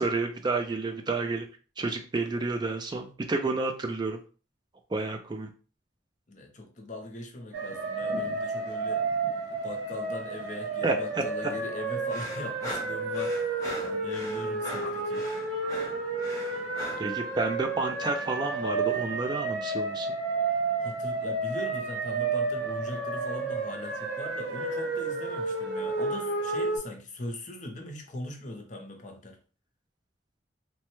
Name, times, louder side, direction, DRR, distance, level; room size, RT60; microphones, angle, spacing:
voice 1, 0.0-1.5 1.8-4.2 4.9-5.5 10.8-11.2 17.0-20.1, right 3 dB, 25° right, 0.3 m, -30 dB
voice 2, 6.3-9.0 9.4-15.3 16.5-16.9 20.4-29.4, left 2 dB, 40° left, 0.6 m, -40 dB
sound 1, 7.5-26.8, right 3 dB, 80° right, 1.3 m, -31 dB
sound 2, 12.1-17.1, equal, 20° left, 0.9 m, -40 dB
3.2 x 2.1 x 3.0 m
head